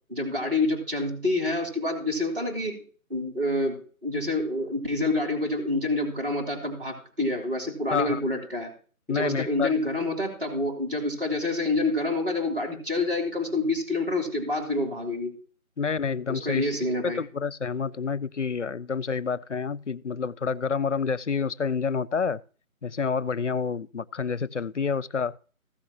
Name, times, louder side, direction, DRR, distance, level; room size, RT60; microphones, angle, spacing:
voice 1, 0.1-2.8 3.1-8.7 9.1-15.3 16.3-17.2, left 2 dB, 40° right, 3.1 m, -27 dB
voice 2, 9.1-9.7 15.8-16.7 17.0-22.4 22.8-25.4, left 5 dB, 55° left, 0.5 m, -28 dB
15.5 x 7.6 x 2.9 m
figure-of-eight pair, 170°, 43 cm